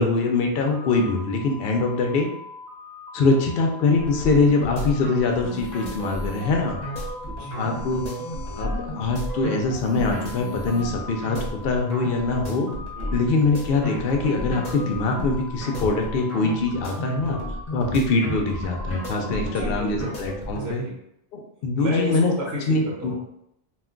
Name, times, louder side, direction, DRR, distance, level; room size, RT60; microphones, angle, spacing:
voice 1, 0.0-2.3 3.1-6.8 7.6-8.0 8.4-12.7 13.1-17.4 17.7-20.8 21.3-22.3 22.7-23.1, left 3 dB, 70° left, 2 dB, 0.7 m, -23 dB
sound 1, 0.7-19.5, left 3 dB, 40° right, 0.9 m, -42 dB
sound 2, 4.0-20.7, equal, 40° left, 0.9 m, -33 dB
voice 2, 7.3-7.6 12.9-13.3 19.5-20.2 20.5-21.0 21.8-23.4, right 2 dB, 80° right, -3 dB, 1.0 m, -33 dB
2.4 x 2.2 x 3.7 m, 0.78 s
omnidirectional pair, 1.1 m